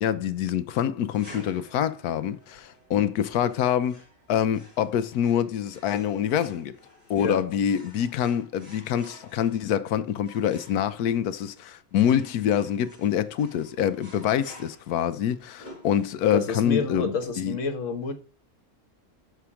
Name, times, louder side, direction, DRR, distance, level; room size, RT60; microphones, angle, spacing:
voice 1, 0.0-4.0 4.3-6.7 7.1-17.6, left 9 dB, 85° left, 1.2 m, -26 dB
sound 1, 1.1-16.5, equal, 30° right, 4.3 m, -52 dB
voice 2, 16.3-18.1, left 4 dB, 55° left, 1.6 m, -29 dB
6.0 x 5.7 x 4.8 m
omnidirectional pair, 1.6 m